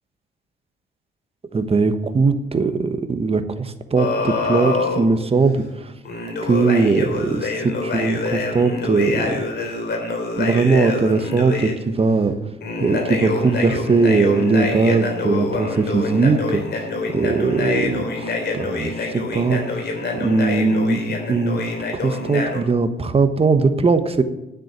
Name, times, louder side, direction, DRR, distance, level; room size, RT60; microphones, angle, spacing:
voice 1, 1.5-5.9 6.4-9.4 10.4-12.3 12.8-16.6 17.1-19.8 20.1-21.0 21.3-21.6 21.9-24.2, right 4 dB, 30° right, 9 dB, 1.3 m, -20 dB
sound 1, 4.0-5.0 6.0-11.7 12.6-22.6, left 3 dB, 55° left, 3.2 m, -26 dB
9.5 x 7.6 x 9.3 m, 0.95 s
cardioid pair, 90°, 20 cm